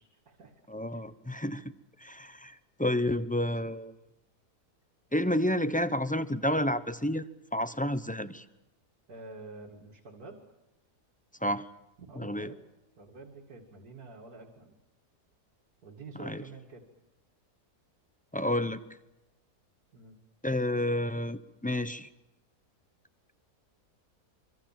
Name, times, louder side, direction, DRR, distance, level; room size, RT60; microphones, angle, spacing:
voice 1, 0.0-0.5 9.1-10.4 12.0-12.6 13.0-14.8 15.8-16.8 19.9-20.2, right 3 dB, 75° right, 0 dB, 2.8 m, -48 dB
voice 2, 0.7-1.6 2.0-3.9 5.1-8.4 11.4-11.6 12.2-12.5 16.2-16.4 18.3-18.8 20.4-22.1, left 1 dB, 5° left, 12 dB, 0.6 m, -30 dB
25.5 x 25.5 x 7.4 m, 0.93 s
omnidirectional pair, 1.6 m